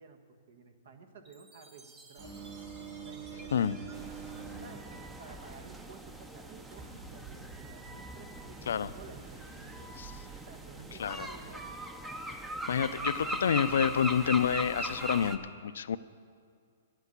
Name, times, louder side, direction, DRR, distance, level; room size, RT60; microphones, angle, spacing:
voice 1, 0.0-2.5 3.0-4.1 4.6-9.9 10.5-11.9, right 5 dB, 65° right, 6 dB, 1.3 m, -53 dB
Chime, 1.3-5.8, right 3 dB, 25° right, 1.1 m, -57 dB
sound 1, 2.2-4.7 6.7-10.4, right 5 dB, 45° right, 3.3 m, -47 dB
sound 2, 3.9-15.4, right 1 dB, 5° right, 0.6 m, -40 dB
voice 2, 12.7-16.0, left 8 dB, 80° left, 15 dB, 0.4 m, -29 dB
10.5 x 8.2 x 8.1 m, 2.2 s
hypercardioid pair, 155°, 0 cm